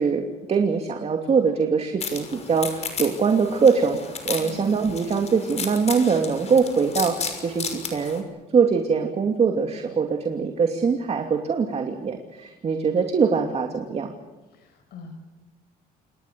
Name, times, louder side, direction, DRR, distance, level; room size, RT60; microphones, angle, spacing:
voice 1, 0.0-8.2 8.5-14.1, right 5 dB, 40° right, 4 dB, 2.8 m, -23 dB
sound 1, 2.0-8.2, left 5 dB, 40° left, 6.2 m, -34 dB
voice 2, 4.4-4.7 14.5-15.1, left 4 dB, 70° left, 5 dB, 5.2 m, -42 dB
28.5 x 21.5 x 6.9 m, 1.1 s
cardioid pair, 110°, 17 cm